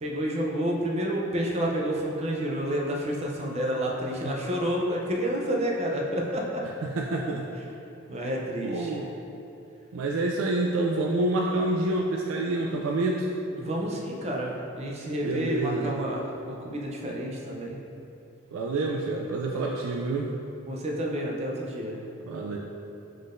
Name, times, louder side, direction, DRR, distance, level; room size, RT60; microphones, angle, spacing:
voice 1, 0.0-6.6 8.1-8.9 13.6-17.8 20.7-22.0, equal, 30° right, -1 dB, 0.5 m, -29 dB
voice 2, 6.6-7.5 8.6-9.1 9.9-13.3 15.2-16.0 18.5-20.3 22.3-22.6, right 2 dB, 90° right, 0 dB, 0.3 m, -28 dB
5.4 x 3.7 x 2.5 m, 2.7 s
head